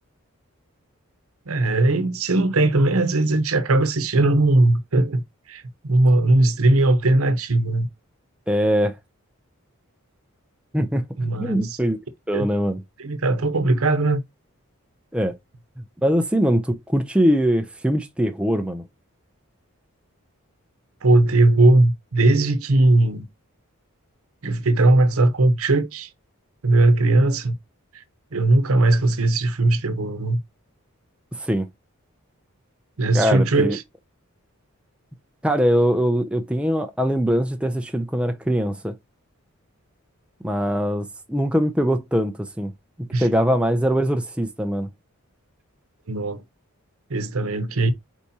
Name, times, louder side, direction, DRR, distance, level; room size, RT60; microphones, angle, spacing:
voice 1, 1.5-5.2 5.5-7.9 11.2-11.8 12.3-12.5 13.0-14.2 21.0-23.3 24.4-26.1 26.6-27.5 28.3-30.4 33.0-33.8 43.1-43.3 46.1-46.4 47.1-47.9, right 2 dB, 70° right, 0.9 m, -19 dB
voice 2, 8.5-8.9 10.7-11.0 11.4-12.0 12.3-12.8 15.1-15.3 16.0-18.8 31.4-31.7 33.1-33.8 35.4-38.9 40.4-42.7 43.2-44.9, equal, 5° right, 0.5 m, -22 dB
4.7 x 4.2 x 2.7 m
head